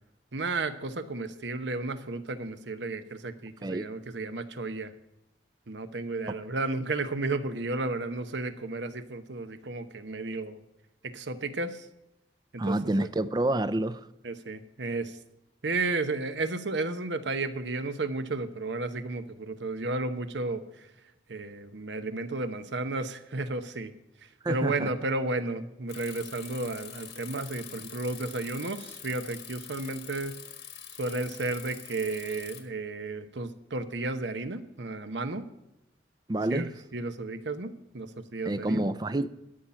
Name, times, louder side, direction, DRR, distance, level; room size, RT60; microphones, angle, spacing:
voice 1, 0.3-4.9 5.7-10.6 11.0-11.9 12.5-13.1 14.2-15.2 15.6-20.9 21.3-23.9 24.2-30.4 31.0-35.5 36.5-38.9, right 3 dB, 85° right, 10 dB, 1.0 m, -33 dB
voice 2, 12.6-14.1 24.4-24.9 36.3-36.7 38.5-39.3, right 1 dB, 25° right, 15 dB, 0.4 m, -28 dB
Bicycle, 25.9-32.6, left 10 dB, 75° left, 1.6 m, -45 dB
12.5 x 5.8 x 8.8 m, 0.89 s
head